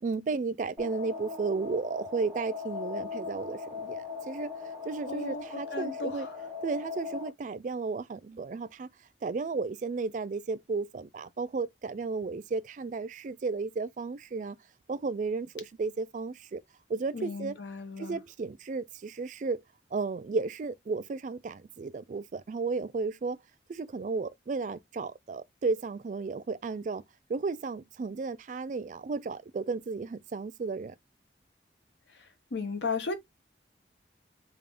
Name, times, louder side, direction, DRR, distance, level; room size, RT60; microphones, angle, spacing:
voice 1, 0.0-4.5 4.9-6.3 6.6-8.9 9.2-14.6 14.9-16.6 16.9-17.6 18.0-19.6 19.9-23.4 23.7-27.0 27.3-30.9, right 4 dB, 45° right, 0.3 m, -33 dB
sound 1, 0.8-7.3, left 5 dB, 15° right, 0.9 m, -39 dB
voice 2, 5.1-6.4 17.1-18.2 32.2-33.1, left 4 dB, 90° left, 0.9 m, -35 dB
3.5 x 2.5 x 3.4 m
head